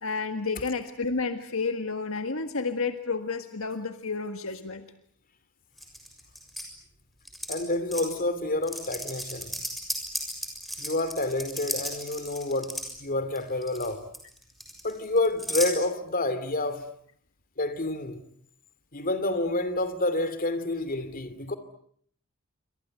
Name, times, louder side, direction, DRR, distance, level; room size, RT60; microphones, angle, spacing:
voice 1, 0.0-4.8, left 4 dB, 65° left, 1.7 m, -31 dB
sound 1, 5.8-6.6 7.2-7.5 7.9-8.1 8.6-12.9 13.4-13.9 14.1-15.7, equal, ahead, 6.7 m, -35 dB
voice 2, 7.5-9.5 10.8-14.1 14.8-16.9 17.6-18.2 18.9-21.5, left 2 dB, 40° left, 2.8 m, -29 dB
28.0 x 25.0 x 7.9 m
head